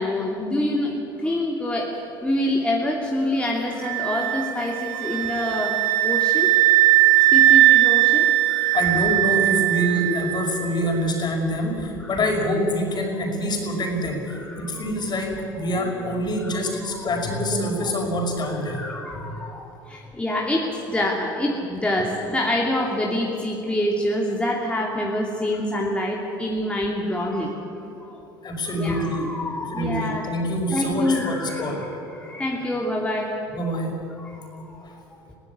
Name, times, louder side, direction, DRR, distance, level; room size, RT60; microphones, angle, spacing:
voice 1, 0.0-5.8 6.0-6.5 7.3-8.9 14.3-14.9 16.4-16.5 16.9-17.4 17.8-17.9 18.4-27.6 28.0-28.2 28.7-30.3 30.7-31.9 32.1-33.4 34.2-34.8 35.3-35.4, left 1 dB, 10° left, -2 dB, 2.8 m, -26 dB
sound 1, 3.8-10.6, right 15 dB, 85° right, 1.4 m, -19 dB
voice 2, 8.7-18.8 19.2-19.3 28.4-29.3 29.7-31.8 33.5-33.9 34.8-34.9, equal, 40° left, 2 dB, 5.6 m, -25 dB
22.5 x 15.5 x 9.6 m, 2.9 s
supercardioid pair, 85°, 11 cm